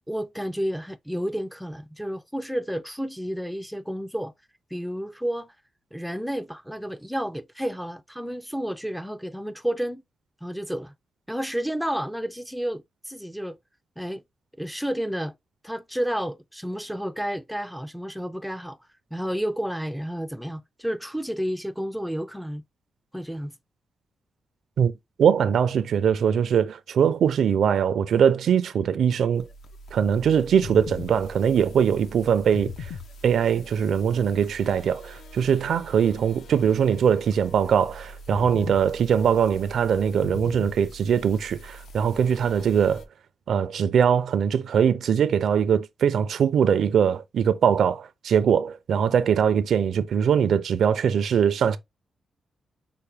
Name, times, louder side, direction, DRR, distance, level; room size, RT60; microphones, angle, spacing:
voice 1, 0.1-4.3 4.7-5.5 5.9-10.0 10.4-10.9 11.3-13.6 14.0-14.2 14.6-15.3 15.6-18.8 19.1-22.6 23.1-23.5, equal, ahead, 0.4 m, -31 dB
voice 2, 25.2-29.5 29.9-32.9 33.2-43.0 43.5-51.8, right 8 dB, 70° right, 0.4 m, -22 dB
sound 1, 29.3-43.1, left 3 dB, 70° left, 0.7 m, -41 dB
5.7 x 2.2 x 3.2 m
wide cardioid pair, 135°, 0 cm